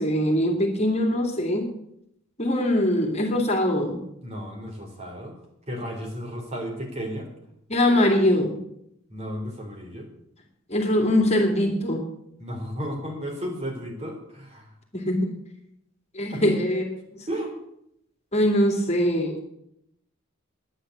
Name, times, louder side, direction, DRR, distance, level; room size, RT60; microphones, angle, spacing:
voice 1, 0.0-1.7 2.4-4.0 7.7-8.6 10.7-12.0 14.9-15.3 16.1-16.9 18.3-19.4, left 1 dB, 35° left, 3 dB, 2.5 m, -22 dB
voice 2, 4.2-5.4 5.7-7.3 9.1-10.1 12.4-14.7 16.3-16.5 17.3-17.6, equal, 35° right, 1 dB, 3.9 m, -33 dB
11.5 x 9.9 x 8.0 m, 0.75 s
head